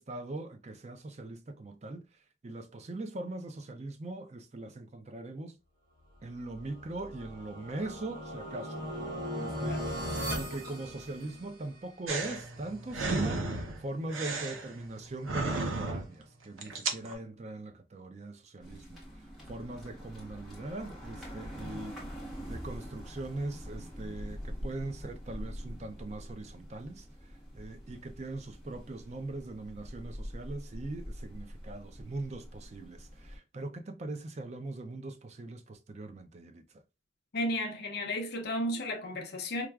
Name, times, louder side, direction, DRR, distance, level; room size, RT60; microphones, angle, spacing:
voice 1, 0.0-2.1 2.4-5.6 6.2-8.9 9.3-9.8 10.4-19.0 19.5-22.0 22.4-27.1 27.5-36.6, right 2 dB, 35° right, 0.4 m, -41 dB
sound 1, 6.5-11.7, equal, 50° right, 1.2 m, -38 dB
sound 2, 12.1-16.2 16.6-17.1, right 3 dB, 85° right, 0.7 m, -34 dB
sound 3, 18.6-33.4, equal, ahead, 1.1 m, -44 dB
voice 2, 37.3-39.7, left 1 dB, 50° left, 0.6 m, -33 dB
4.5 x 2.3 x 2.3 m
head